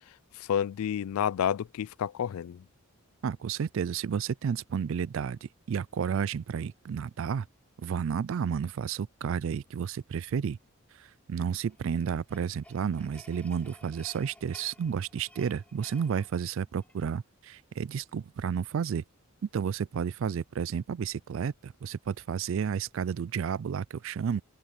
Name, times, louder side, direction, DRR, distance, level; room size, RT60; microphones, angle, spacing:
voice 1, 0.4-2.6, left 9 dB, 80° left, 0.3 m, -30 dB
voice 2, 3.2-7.5 7.8-10.6 11.0-19.0 19.4-24.4, right 7 dB, 60° right, 0.3 m, -31 dB
sound 1, 11.7-17.2, left 1 dB, 5° left, 6.5 m, -56 dB
open air
head